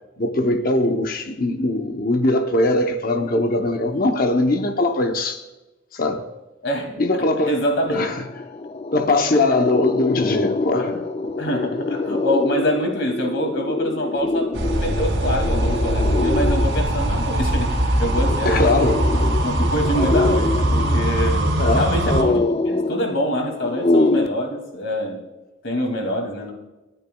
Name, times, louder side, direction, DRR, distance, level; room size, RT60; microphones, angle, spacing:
voice 1, 0.2-5.4 5.9-6.2 7.0-7.6 7.9-8.2 8.9-11.0 18.4-19.1 21.6-21.9, left 2 dB, 45° left, 0.8 m, -21 dB
voice 2, 7.5-8.1 10.7-11.0 11.4-18.7 19.4-21.5 21.8-25.2 25.6-26.5, equal, 65° left, 2.4 m, -25 dB
sound 1, 7.7-7.8 8.1-24.3, left 2 dB, 30° left, 0.4 m, -25 dB
sound 2, 14.5-22.2, right 1 dB, 65° right, 2.2 m, -21 dB
27.0 x 10.0 x 2.3 m
head